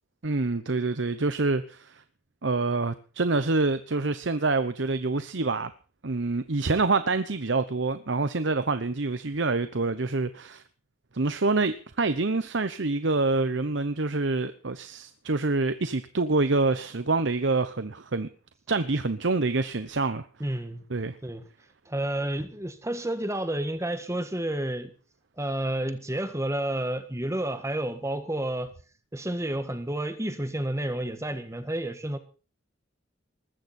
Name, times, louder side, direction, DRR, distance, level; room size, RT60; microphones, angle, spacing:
voice 1, 0.2-2.0 2.4-5.7 6.0-10.6 11.1-18.3 18.7-20.2 20.9-21.2, right 3 dB, 70° right, 1.0 m, -26 dB
voice 2, 20.4-20.8 21.2-21.4 21.9-24.9 25.4-28.7 29.1-32.2, right 1 dB, 15° right, 1.5 m, -30 dB
20.0 x 15.0 x 4.4 m
head